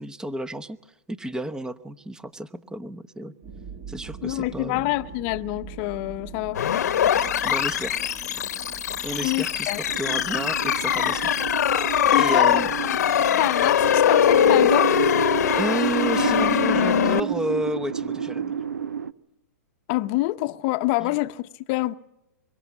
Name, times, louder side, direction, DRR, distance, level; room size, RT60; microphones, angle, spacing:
voice 1, 0.0-3.3 3.9-4.9 7.4-8.0 9.0-11.3 12.2-12.7 15.6-18.5 21.0-21.2, right 1 dB, 5° right, 0.9 m, -31 dB
sound 1, 3.4-16.0, right 5 dB, 40° right, 2.7 m, -44 dB
voice 2, 4.2-6.6 9.2-9.8 12.1-12.6 12.9-13.0 13.4-15.0 19.9-21.9, left 19 dB, 40° left, 0.8 m, -26 dB
sound 2, 6.5-17.2, left 10 dB, 70° left, 1.0 m, -22 dB
sound 3, 9.9-19.1, right 8 dB, 90° right, 0.8 m, -30 dB
24.0 x 23.0 x 7.3 m
hypercardioid pair, 125°, 9 cm